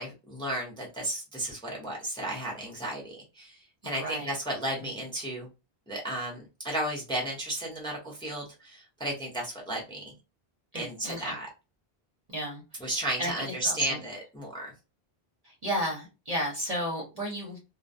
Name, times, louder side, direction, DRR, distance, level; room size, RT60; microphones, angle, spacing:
voice 1, 0.0-5.5 5.9-10.1 10.7-11.5 12.8-14.7, right 1 dB, 5° left, -2 dB, 0.7 m, -34 dB
voice 2, 3.8-4.3 10.7-11.3 12.3-12.9 13.2-14.0 15.4-17.6, equal, 40° right, -2 dB, 0.8 m, -33 dB
2.2 x 2.1 x 2.5 m, 0.28 s
omnidirectional pair, 1.1 m